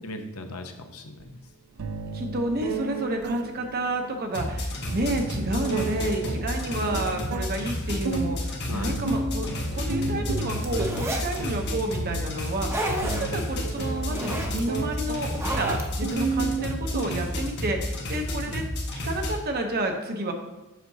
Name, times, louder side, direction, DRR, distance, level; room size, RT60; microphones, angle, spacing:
voice 1, 0.0-1.4 8.7-8.9 9.7-10.0 13.0-13.4 18.4-18.5, left 2 dB, 80° left, 5 dB, 0.8 m, -38 dB
sound 1, 1.2-1.3 1.8-17.7, right 4 dB, 85° right, 0.5 m, -34 dB
voice 2, 2.1-18.6 19.0-20.3, right 1 dB, 45° right, 4 dB, 0.8 m, -30 dB
sound 2, 4.3-19.3, left 1 dB, 50° left, 1.2 m, -31 dB
sound 3, 10.6-11.4 12.4-13.4 13.8-14.6 15.1-16.1, right 1 dB, 10° right, 0.7 m, -31 dB
7.4 x 5.8 x 2.8 m, 1.0 s
head